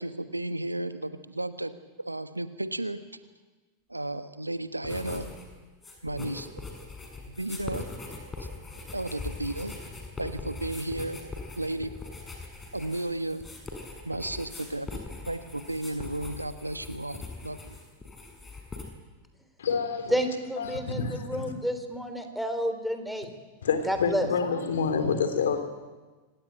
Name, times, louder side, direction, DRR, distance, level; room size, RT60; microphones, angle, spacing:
voice 1, 0.0-1.7 2.0-3.0 3.9-5.3 6.0-6.5 7.3-7.8 8.4-8.5 8.9-9.7 10.2-11.2 11.6-11.9 12.7-13.4 14.0-15.0 15.3-17.8, right 1 dB, 85° right, 11 dB, 1.3 m, -33 dB
sound 1, 4.8-5.5 5.7-18.8, left 3 dB, 15° left, 6.2 m, -41 dB
voice 2, 19.6-20.2 20.6-21.5 23.6-25.6, left 5 dB, 65° left, 8 dB, 3.4 m, -28 dB
voice 3, 20.1-23.3 23.9-24.3, equal, ahead, 7 dB, 3.6 m, -30 dB
25.5 x 18.5 x 9.2 m, 1.3 s
figure-of-eight pair, 90°, 0 cm